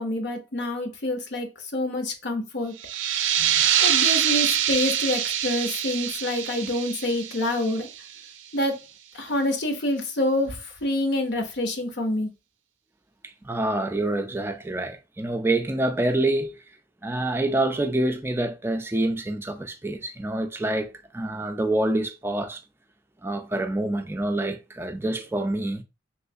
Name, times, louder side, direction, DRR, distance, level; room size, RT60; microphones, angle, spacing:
voice 1, 0.0-2.7 3.8-7.9 8.5-8.8 9.1-12.3, left 1 dB, 65° left, 0.7 m, -27 dB
sound 1, 2.8-8.2, right 9 dB, 85° right, 0.4 m, -25 dB
voice 2, 13.2-16.6 17.0-22.6 23.2-25.8, right 1 dB, 10° right, 0.4 m, -27 dB
3.2 x 3.1 x 2.6 m
head